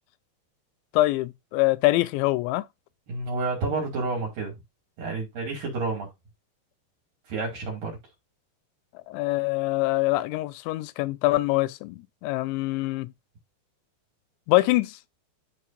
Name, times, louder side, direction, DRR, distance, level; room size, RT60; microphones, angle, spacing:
voice 1, 0.9-2.6 9.1-13.1 14.5-15.0, left 19 dB, 90° left, 3.0 m, -24 dB
voice 2, 3.1-4.5 5.0-6.1 7.3-8.0, right 3 dB, 55° right, 4.0 m, -29 dB
12.5 x 5.0 x 2.6 m
omnidirectional pair, 5.2 m